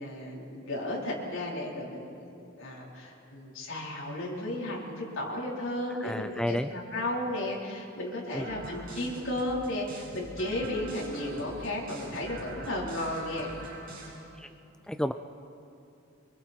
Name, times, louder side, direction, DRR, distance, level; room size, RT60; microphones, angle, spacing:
voice 1, 0.0-13.6, left 1 dB, 70° left, -3 dB, 4.5 m, -34 dB
voice 2, 6.0-6.7 8.3-8.5 14.4-14.5 14.9-15.1, left 1 dB, 5° left, 9 dB, 0.4 m, -31 dB
sound 1, 8.4-14.1, right 2 dB, 45° right, 7.1 m, -44 dB
25.5 x 24.0 x 4.6 m, 2.8 s
head